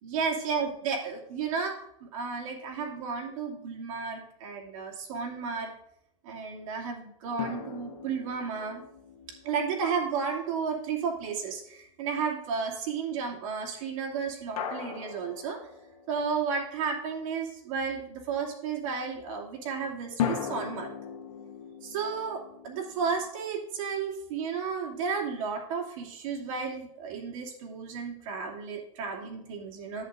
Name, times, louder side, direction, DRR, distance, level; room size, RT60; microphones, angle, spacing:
voice 1, 0.0-5.8 6.2-8.8 9.4-15.6 16.1-20.9 21.8-30.1, right 5 dB, 70° right, 0 dB, 2.5 m, -33 dB
sound 1, 7.4-10.7 14.6-16.6 20.2-23.3, left 7 dB, 85° left, 1.2 m, -38 dB
11.0 x 7.9 x 2.6 m, 0.78 s
supercardioid pair, 130°, 18 cm